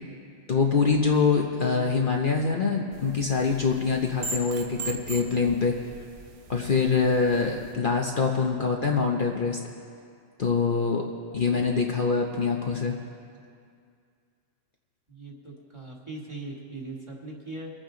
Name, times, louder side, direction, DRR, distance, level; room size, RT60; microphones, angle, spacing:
voice 1, 0.5-5.7 6.5-9.6 10.4-11.0 11.3-12.9, left 5 dB, 45° left, 0 dB, 0.9 m, -24 dB
sound 1, 2.9-7.7, right 4 dB, 70° right, 1.2 m, -40 dB
voice 2, 15.1-17.7, right 2 dB, 25° right, -3 dB, 1.8 m, -40 dB
23.5 x 8.8 x 3.8 m, 2.3 s
omnidirectional pair, 1.3 m